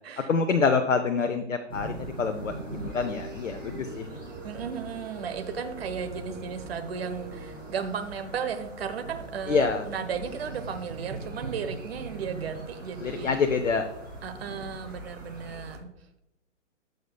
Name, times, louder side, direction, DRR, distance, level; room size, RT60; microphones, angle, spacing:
voice 1, 0.3-4.2 9.5-9.8 13.0-13.9, left 5 dB, 80° left, 7 dB, 0.7 m, -26 dB
sound 1, 1.7-15.8, right 2 dB, 90° right, 2.5 m, -41 dB
sound 2, 2.4-7.8, right 2 dB, 20° right, 1.5 m, -45 dB
voice 2, 4.4-13.3 14.2-15.9, right 6 dB, 55° right, 8 dB, 1.0 m, -35 dB
10.5 x 6.5 x 2.2 m, 0.88 s
figure-of-eight pair, 130°, 37 cm